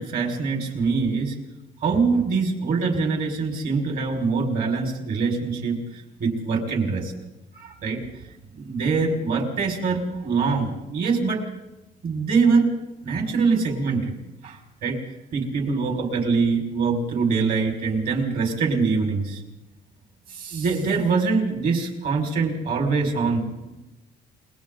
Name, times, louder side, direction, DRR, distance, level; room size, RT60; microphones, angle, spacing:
voice 1, 0.0-1.4 1.8-7.1 7.5-11.4 12.0-12.7 13.0-14.1 14.4-15.0 15.3-19.4 20.3-23.7, right 4 dB, 60° right, 2 dB, 5.6 m, -24 dB
29.5 x 23.0 x 4.0 m, 1.0 s
cardioid pair, 110°, 17 cm